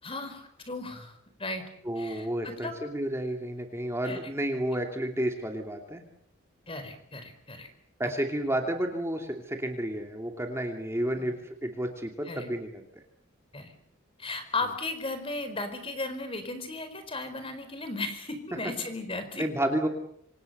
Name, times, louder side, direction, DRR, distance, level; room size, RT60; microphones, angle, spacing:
voice 1, 0.0-1.6 2.0-2.8 4.0-4.2 6.7-7.7 12.2-12.5 13.5-13.7 14.2-19.5, left 2 dB, 25° left, 9 dB, 4.4 m, -36 dB
voice 2, 1.8-6.0 8.0-12.8 19.4-19.9, right 1 dB, 15° right, 3 dB, 2.8 m, -31 dB
27.0 x 26.5 x 6.8 m, 0.71 s
head